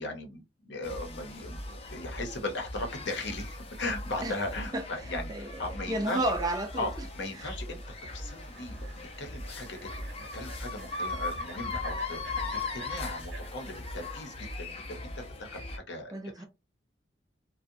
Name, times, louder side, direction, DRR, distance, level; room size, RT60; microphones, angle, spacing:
voice 1, 0.0-6.2 6.8-9.9 10.2-16.4, left 2 dB, 65° left, 0.7 m, -38 dB
sound 1, 0.8-15.8, left 2 dB, 30° left, 0.5 m, -39 dB
voice 2, 5.3-6.9 7.4-7.5 16.1-16.4, right 1 dB, 20° right, 0.4 m, -32 dB
sound 2, 7.9-13.5, right 3 dB, 65° right, 1.0 m, -48 dB
2.6 x 2.1 x 2.6 m
head